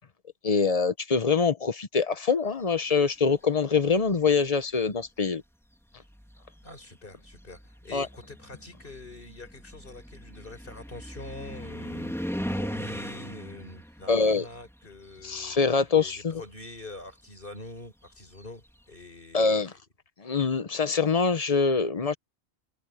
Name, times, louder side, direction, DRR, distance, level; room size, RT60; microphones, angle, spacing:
voice 1, 0.4-5.4 7.9-8.1 14.1-14.4 15.2-16.4 19.3-19.7 20.2-22.1, left 5 dB, 35° left, 1.0 m, -24 dB
sound 1, 3.8-4.3 5.3-5.4 6.0-15.9 16.2-18.8, equal, ahead, 3.0 m, -39 dB
voice 2, 6.6-15.6 15.9-19.8, left 2 dB, 50° left, 5.0 m, -45 dB
omnidirectional pair, 1.2 m